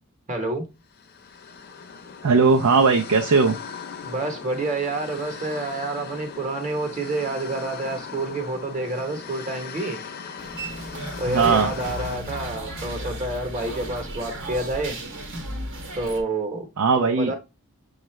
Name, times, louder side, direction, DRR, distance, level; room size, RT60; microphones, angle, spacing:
voice 1, 0.3-0.7 4.0-10.0 11.2-15.0 16.0-16.7 16.9-17.4, right 2 dB, 35° right, 0.9 m, -28 dB
sound 1, 0.9-12.2, left 6 dB, 50° left, 0.6 m, -39 dB
voice 2, 2.2-3.5 11.2-11.7 16.8-17.3, right 4 dB, 80° right, 0.5 m, -18 dB
sound 2, 10.4-16.2, right 1 dB, 60° right, 0.9 m, -34 dB
6.4 x 2.4 x 3.1 m
head